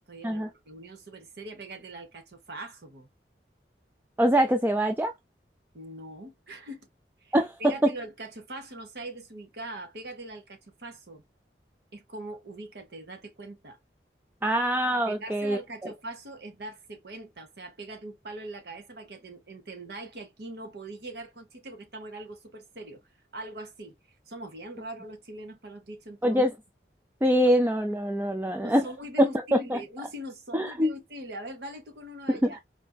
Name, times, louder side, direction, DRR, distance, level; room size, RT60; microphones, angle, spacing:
voice 1, 0.0-3.1 5.7-6.9 7.2-7.3 7.6-11.2 11.9-13.8 15.1-23.0 23.3-24.0 24.3-26.4 28.6-32.6, right 1 dB, 70° right, 1.1 m, -42 dB
voice 2, 4.2-5.1 7.3-7.9 14.4-15.6 26.2-26.5 27.2-28.9 29.2-29.8 30.5-30.9 32.3-32.5, equal, 10° right, 0.4 m, -24 dB
4.3 x 2.6 x 2.2 m
head